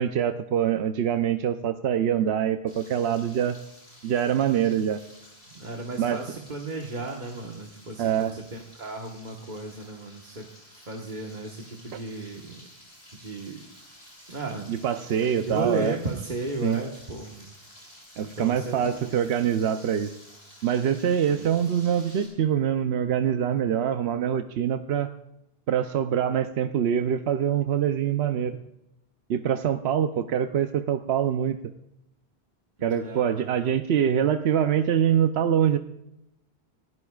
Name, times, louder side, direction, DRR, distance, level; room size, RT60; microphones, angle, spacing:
voice 1, 0.0-3.6 4.0-5.0 6.0-6.2 8.0-8.3 11.9-12.0 14.7-16.0 16.6-16.8 18.2-20.1 20.6-25.1 25.7-28.6 29.3-31.6 32.8-35.8, right 9 dB, 80° right, 8 dB, 0.9 m, -24 dB
Frying (food), 2.7-22.3, left 1 dB, 75° left, 7.4 m, -51 dB
voice 2, 5.5-10.5 10.9-12.6 13.2-13.6 14.3-14.7 15.4-17.5 18.2-19.2 21.3-21.4 32.8-33.5, right 2 dB, 45° right, 0 dB, 1.5 m, -34 dB
26.5 x 15.0 x 2.4 m, 0.84 s
omnidirectional pair, 1.1 m